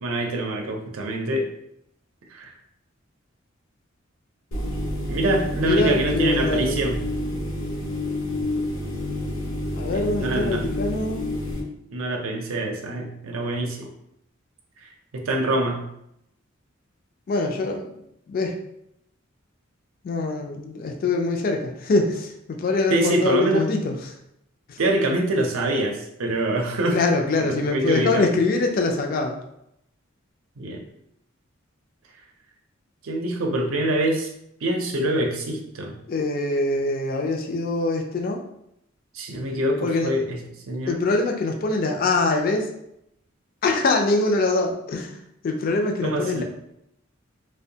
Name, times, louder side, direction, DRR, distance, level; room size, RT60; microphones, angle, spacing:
voice 1, 0.0-1.5 2.3-2.5 5.1-7.0 9.9-10.6 11.9-13.9 15.1-15.8 22.9-23.7 24.8-27.0 27.7-28.3 30.6-30.8 33.0-34.3 34.6-36.0 39.1-40.4 40.7-41.0 46.0-46.4, right 1 dB, 85° right, 2 dB, 0.5 m, -25 dB
sound 1, 4.5-11.6, left 1 dB, 75° left, 0.7 m, -28 dB
voice 2, 5.6-6.8 9.8-11.3 17.3-18.0 18.3-18.6 20.0-24.2 24.7-24.8 26.9-29.4 36.1-38.4 39.8-40.1 40.9-42.7 43.6-45.2 45.4-46.4, left 3 dB, 45° left, 2 dB, 0.3 m, -24 dB
2.6 x 2.1 x 2.7 m, 0.77 s
head